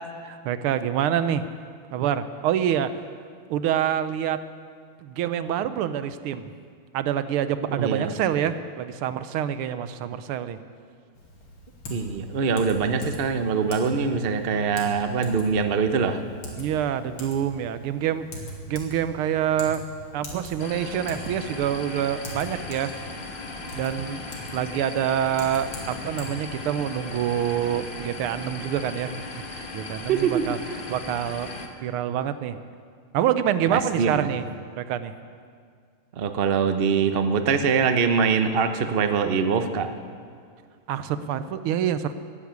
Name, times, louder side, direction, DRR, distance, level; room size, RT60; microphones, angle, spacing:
voice 1, 0.2-1.5 1.9-2.9 3.5-4.4 5.0-6.5 6.9-10.6 16.6-18.3 18.7-19.8 20.1-22.9 23.7-24.2 24.5-29.2 29.5-30.6 30.9-31.5 31.8-32.6 33.1-34.5 34.8-35.2 40.9-42.1, right 10 dB, 85° right, 12 dB, 1.6 m, -26 dB
voice 2, 7.8-8.1 11.9-16.2 30.1-30.5 33.7-34.3 36.2-39.9, right 5 dB, 60° right, 8 dB, 0.5 m, -23 dB
Typing, 11.1-26.2, left 1 dB, 75° left, 3.3 m, -42 dB
sound 1, 20.6-31.7, left 3 dB, 30° left, 1.1 m, -37 dB
15.0 x 9.8 x 9.5 m, 2.1 s
omnidirectional pair, 2.3 m